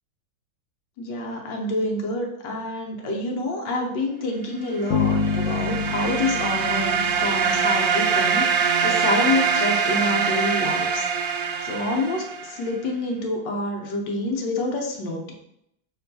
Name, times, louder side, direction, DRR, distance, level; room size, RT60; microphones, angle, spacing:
voice 1, 1.0-11.3 11.6-15.3, left 2 dB, 70° left, 0 dB, 1.3 m, -27 dB
sound 1, 4.9-7.9, left 5 dB, 90° left, 1.4 m, -27 dB
sound 2, 4.9-12.6, right 6 dB, 75° right, 1.0 m, -23 dB
5.9 x 3.0 x 2.7 m, 0.77 s
omnidirectional pair, 2.2 m